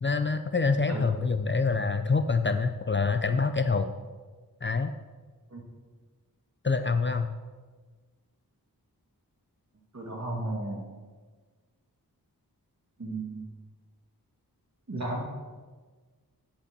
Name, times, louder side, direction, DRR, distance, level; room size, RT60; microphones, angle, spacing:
voice 1, 0.0-3.9 4.6-4.9 6.6-7.3, left 4 dB, 30° left, 8 dB, 0.4 m, -26 dB
voice 2, 9.9-10.8 13.0-13.4 14.9-15.2, right 2 dB, 45° right, -1 dB, 2.4 m, -33 dB
8.7 x 5.5 x 6.7 m, 1.4 s
wide cardioid pair, 75°, 37 cm